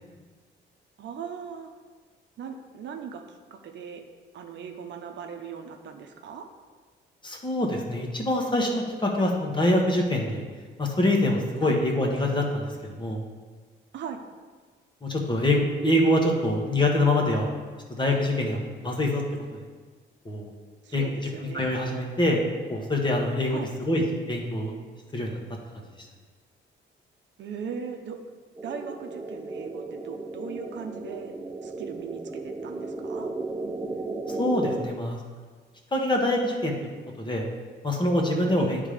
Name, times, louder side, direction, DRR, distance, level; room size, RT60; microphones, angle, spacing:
voice 1, 1.0-1.7 2.4-3.2 3.5-4.0 4.3-6.5 11.6-11.8 13.9-14.2 20.8-21.7 23.5-23.7 27.4-28.2 28.6-31.3 31.6-33.3 38.6-38.7, right 6 dB, 65° right, 4 dB, 0.8 m, -38 dB
voice 2, 7.2-10.4 10.8-13.2 15.0-17.5 18.0-19.2 19.5-19.6 20.2-20.5 20.9-21.1 21.5-22.4 22.7-24.7 25.1-25.4 34.3-35.2 35.9-36.7 37.2-37.4 37.8-38.8, left 1 dB, 25° left, 0 dB, 1.4 m, -25 dB
sound 1, 28.6-34.9, right 3 dB, 15° right, 0.5 m, -35 dB
9.6 x 3.7 x 5.0 m, 1.4 s
cardioid pair, 90°, 20 cm